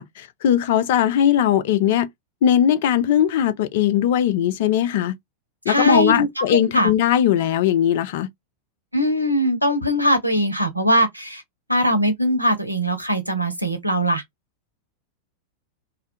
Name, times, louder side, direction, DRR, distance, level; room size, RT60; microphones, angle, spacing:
voice 1, 0.0-2.1 2.4-5.1 5.7-8.3, left 10 dB, 55° left, 0.4 m, -19 dB
voice 2, 5.7-6.9 8.9-11.4 11.7-14.2, equal, 90° right, 0.7 m, -21 dB
2.3 x 2.2 x 2.5 m
figure-of-eight pair, 90°, 0 cm